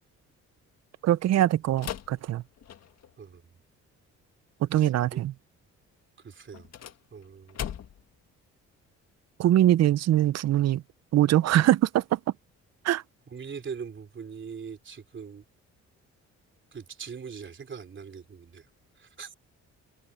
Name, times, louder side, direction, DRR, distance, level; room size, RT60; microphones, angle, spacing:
voice 1, 1.0-2.4 4.6-5.3 9.4-10.8 11.1-12.2 12.8-13.0, right 13 dB, 60° right, 0.6 m, -22 dB
sound 1, 1.8-3.2 6.5-8.2, left 9 dB, 60° left, 1.6 m, -39 dB
voice 2, 4.7-5.2 6.2-6.7 7.1-7.6 13.3-15.4 16.7-18.7 19.0-19.3, right 6 dB, 40° right, 3.2 m, -41 dB
cardioid pair, 90°, 30 cm